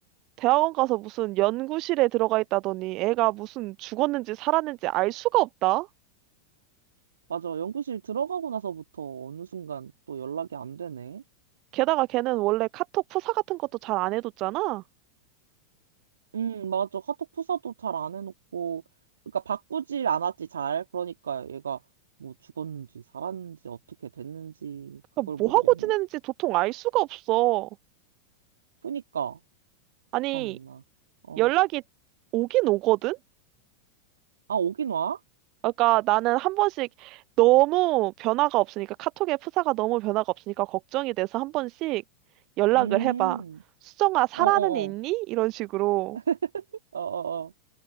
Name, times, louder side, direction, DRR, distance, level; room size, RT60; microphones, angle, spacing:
voice 1, 0.4-5.9 11.7-14.8 25.2-27.7 30.1-30.6 31.4-31.8 32.3-33.2 35.6-42.0 42.6-43.4 43.8-46.2, right 20 dB, 40° right, 0.4 m, -25 dB
voice 2, 7.3-11.2 16.3-18.8 19.3-21.8 22.2-25.9 28.8-29.4 30.3-30.8 31.3-31.5 34.5-35.2 42.7-43.6 44.4-44.9 46.1-46.6 46.9-47.5, right 8 dB, 70° right, 2.4 m, -32 dB
open air
figure-of-eight pair, 90°, 0 cm